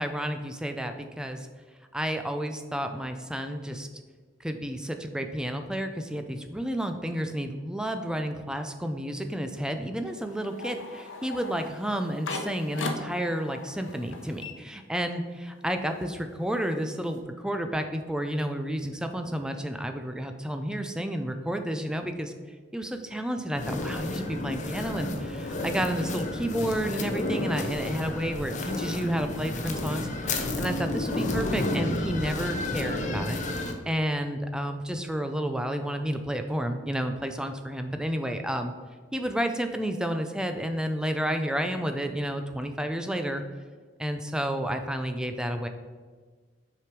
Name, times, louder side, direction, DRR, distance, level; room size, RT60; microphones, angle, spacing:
voice 1, 0.0-1.5 1.9-3.9 4.4-22.3 22.7-33.4 33.9-38.7 39.1-43.4 44.0-45.7, equal, 5° right, 6 dB, 0.4 m, -31 dB
sound 1, 10.2-15.3 15.6-17.2, left 3 dB, 75° left, 0.9 m, -40 dB
sound 2, 23.5-33.7, left 2 dB, 40° left, 0.7 m, -31 dB
6.2 x 5.0 x 4.6 m, 1.5 s
head